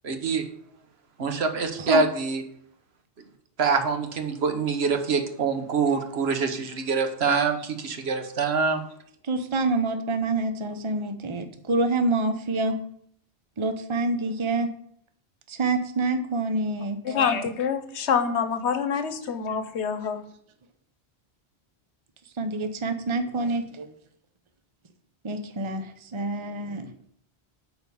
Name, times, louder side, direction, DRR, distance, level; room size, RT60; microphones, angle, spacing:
voice 1, 0.0-0.4 1.2-2.4 3.6-8.8, right 4 dB, 70° right, 6 dB, 1.3 m, -25 dB
voice 2, 9.2-12.8 13.6-14.7 15.5-17.2 22.4-23.9 25.2-26.9, right 2 dB, 30° right, 8 dB, 0.7 m, -27 dB
voice 3, 17.0-20.2, left 6 dB, 85° left, 10 dB, 1.1 m, -26 dB
8.3 x 4.5 x 7.0 m, 0.66 s
omnidirectional pair, 1.1 m